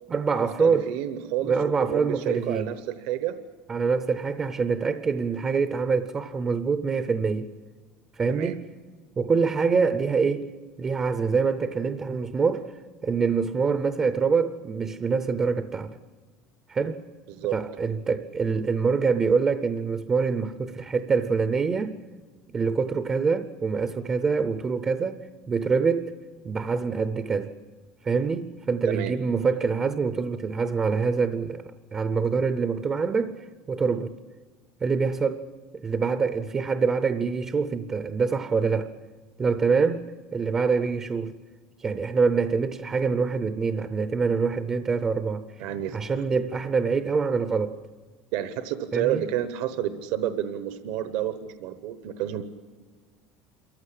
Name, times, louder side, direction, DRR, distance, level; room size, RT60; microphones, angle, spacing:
voice 1, 0.1-0.9 1.4-2.7 3.7-7.5 8.2-8.6 9.2-10.5 10.8-12.7 13.0-16.0 16.7-17.0 17.5-22.0 22.5-25.2 25.5-26.1 26.4-27.5 28.0-31.6 31.9-34.1 34.8-35.4 35.8-38.9 39.4-40.0 40.3-41.4 41.8-45.5 45.9-47.8 48.9-49.2, right 5 dB, 20° right, 0.6 m, -25 dB
voice 2, 0.6-1.5 1.8-3.3 8.3-8.6 17.3-17.5 28.9-29.2 45.6-46.0 48.3-52.4, right 12 dB, 65° right, 1.0 m, -29 dB
27.5 x 14.5 x 10.0 m
cardioid pair, 175°, 3 cm